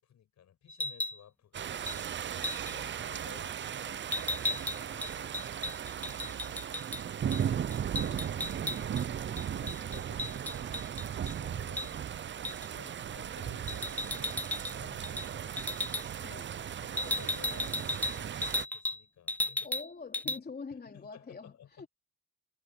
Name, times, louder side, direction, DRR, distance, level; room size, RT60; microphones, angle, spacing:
voice 1, 0.0-2.3 2.6-5.7 6.0-10.8 11.1-12.0 12.4-19.7 20.2-20.4 20.7-21.9, left 10 dB, 65° left, 7.1 m, -56 dB
sound 1, 0.7-1.2 1.9-2.0 2.4-2.7 4.1-7.0 7.3-7.4 7.7-9.0 9.4-11.3 11.8-11.9 12.4-12.7 13.7-14.8 15.0-15.3 15.6-16.0 17.0-19.0 19.3-19.9 20.1-20.4, left 2 dB, 5° left, 0.4 m, -35 dB
sound 2, 1.5-18.6, right 9 dB, 40° right, 0.6 m, -37 dB
voice 2, 19.6-21.9, left 4 dB, 30° left, 3.9 m, -45 dB
cardioid pair, 90°, 30 cm